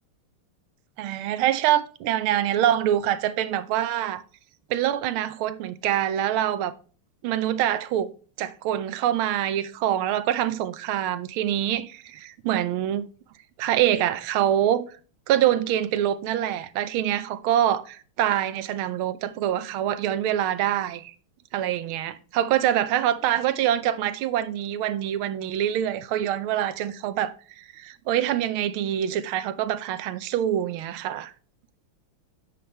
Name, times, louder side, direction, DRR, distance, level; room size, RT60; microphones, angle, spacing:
voice 1, 1.0-4.2 4.7-6.7 7.2-8.1 8.4-13.0 13.6-14.9 15.3-21.1 21.5-31.3, right 11 dB, 75° right, 1.5 m, -25 dB
8.5 x 5.4 x 3.2 m
omnidirectional pair, 2.4 m